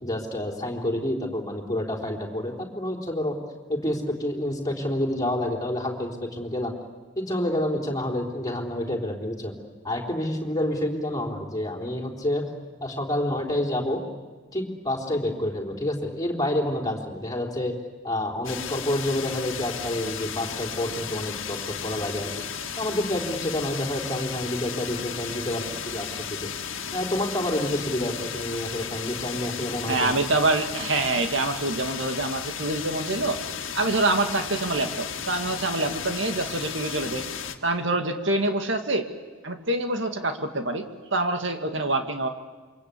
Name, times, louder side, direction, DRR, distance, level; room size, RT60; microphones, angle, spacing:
voice 1, 0.0-3.4 3.7-6.7 7.2-9.5 9.8-12.5 12.8-14.0 14.5-17.7 18.0-22.3 22.8-26.5 26.9-30.1, left 1 dB, 20° left, 0 dB, 3.9 m, -28 dB
sound 1, 18.4-37.5, left 7 dB, 80° left, 1.8 m, -34 dB
voice 2, 29.9-33.4 33.8-37.2 37.6-39.1 39.4-42.3, right 2 dB, 65° right, 6 dB, 2.2 m, -26 dB
28.0 x 24.5 x 8.6 m, 1.3 s
head